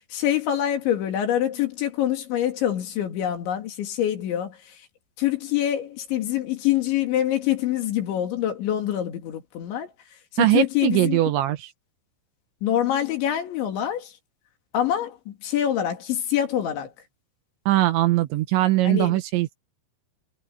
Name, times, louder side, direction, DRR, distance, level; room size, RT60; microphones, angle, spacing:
voice 1, 0.0-4.9 5.2-9.9 10.3-11.2 12.6-14.2 14.7-16.9 18.8-19.2, left 11 dB, 65° left, 4.7 m, -25 dB
voice 2, 10.4-11.7 17.7-19.6, right 15 dB, 75° right, 3.1 m, -21 dB
omnidirectional pair, 5.8 m